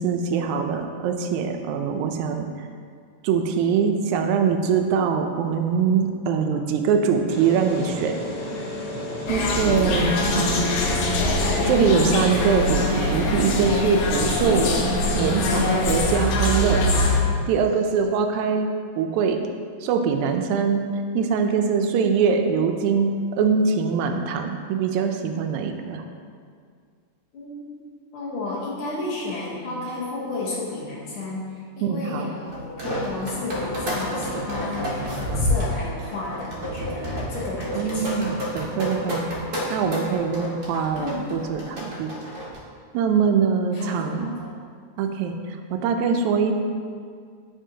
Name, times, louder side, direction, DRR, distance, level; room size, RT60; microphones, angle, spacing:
voice 1, 0.0-2.7 3.2-8.2 9.3-10.7 11.6-14.7 15.2-16.8 17.5-19.4 19.8-20.8 21.1-26.0 31.8-32.3 37.8-39.3 39.7-42.1 42.9-44.3 45.0-46.5, right 6 dB, 85° right, 5 dB, 1.9 m, -23 dB
sound 1, 7.3-12.8, left 1 dB, 20° left, 1.0 m, -32 dB
sound 2, 9.3-17.2, left 2 dB, 85° left, 2.1 m, -23 dB
voice 2, 9.6-10.6 27.3-27.8 28.1-38.2 41.0-41.3 43.7-44.6, left 2 dB, 60° left, -6 dB, 1.5 m, -32 dB
sound 3, 32.5-42.6, left 1 dB, 50° right, 1.2 m, -29 dB
10.0 x 4.1 x 2.7 m, 2.1 s
omnidirectional pair, 3.3 m